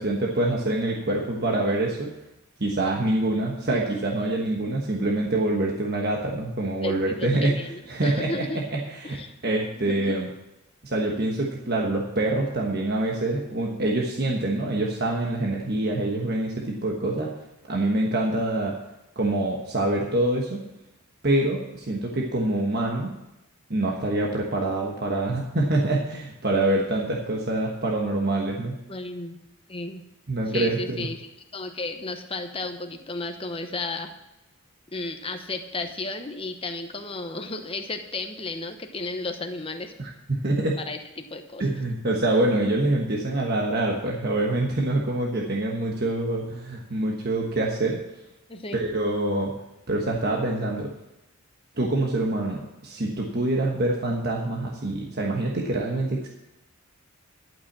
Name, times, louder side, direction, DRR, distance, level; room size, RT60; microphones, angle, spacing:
voice 1, 0.0-2.1 2.6-7.6 7.9-9.2 9.4-10.3 10.8-17.3 17.7-18.7 19.2-20.6 21.2-23.1 23.7-28.7 30.3-31.1 40.0-40.8 41.6-48.0 48.7-49.5 49.9-50.9 51.8-56.3, right 2 dB, 45° right, -1 dB, 1.3 m, -25 dB
voice 2, 6.8-8.6 9.0-9.3 9.7-10.2 28.9-29.4 29.7-30.0 30.5-34.1 34.9-39.9 40.8-41.7 48.5-48.8, left 3 dB, 25° left, 6 dB, 0.9 m, -33 dB
11.5 x 6.1 x 7.3 m, 0.91 s
head